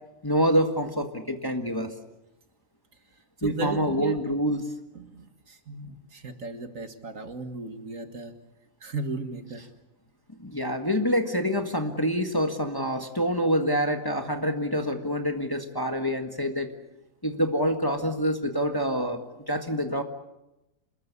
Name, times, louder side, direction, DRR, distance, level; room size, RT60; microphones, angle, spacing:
voice 1, 0.2-1.9 3.4-4.7 10.4-16.7 17.2-19.2 19.5-20.0, equal, 15° left, 5 dB, 1.7 m, -26 dB
voice 2, 3.4-4.1 4.9-8.3 8.8-9.6, right 4 dB, 60° right, 7 dB, 2.3 m, -35 dB
27.0 x 21.5 x 8.4 m, 0.95 s
omnidirectional pair, 1.6 m